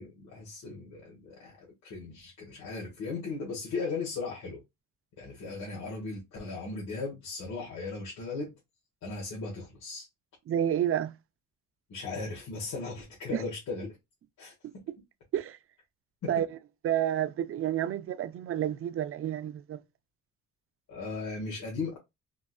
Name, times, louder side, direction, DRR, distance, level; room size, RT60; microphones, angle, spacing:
voice 1, 0.0-4.6 5.2-8.5 9.0-10.1 11.9-14.0 14.4-14.5 16.2-16.4 20.9-22.0, left 3 dB, 70° left, 1.4 m, -37 dB
voice 2, 10.5-11.1 13.3-13.4 14.6-14.7 15.3-15.6 16.3-16.5 16.8-19.8, right 11 dB, 50° right, 0.4 m, -29 dB
3.7 x 2.4 x 2.3 m
cardioid pair, 90°, 30 cm